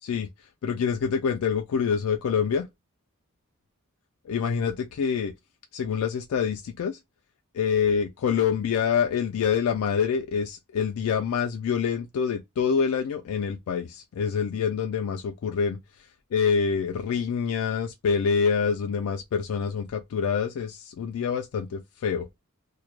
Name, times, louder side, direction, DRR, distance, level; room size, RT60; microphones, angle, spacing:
voice 1, 0.6-2.7 4.3-5.3 5.7-7.0 7.5-15.8 16.3-22.3, left 6 dB, 70° left, 0.3 m, -26 dB
2.2 x 2.1 x 2.9 m
head